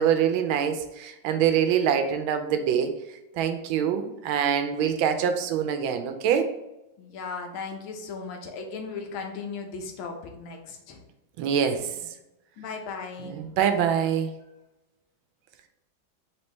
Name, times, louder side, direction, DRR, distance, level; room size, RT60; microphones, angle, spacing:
voice 1, 0.0-2.9 3.4-6.5 11.4-12.0 13.2-14.3, right 8 dB, 85° right, 8 dB, 1.4 m, -24 dB
voice 2, 7.0-11.0 12.6-13.4, left 4 dB, 90° left, 3 dB, 1.6 m, -37 dB
4.4 x 3.4 x 3.1 m, 0.93 s
omnidirectional pair, 2.2 m